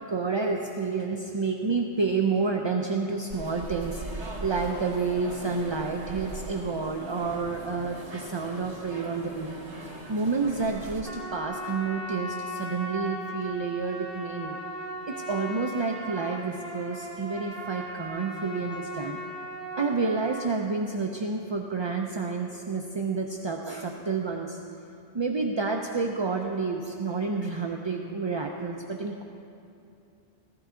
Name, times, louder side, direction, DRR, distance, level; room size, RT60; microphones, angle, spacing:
voice 1, 0.1-9.5 10.1-14.6 15.1-19.2 19.8-24.6 25.1-29.3, right 4 dB, 35° right, 2 dB, 0.5 m, -29 dB
sound 1, 3.3-11.0, right 2 dB, 85° right, 2.3 m, -40 dB
Trumpet, 11.0-20.5, equal, 55° right, 1.7 m, -38 dB
15.5 x 13.5 x 3.8 m, 2.6 s
omnidirectional pair, 1.1 m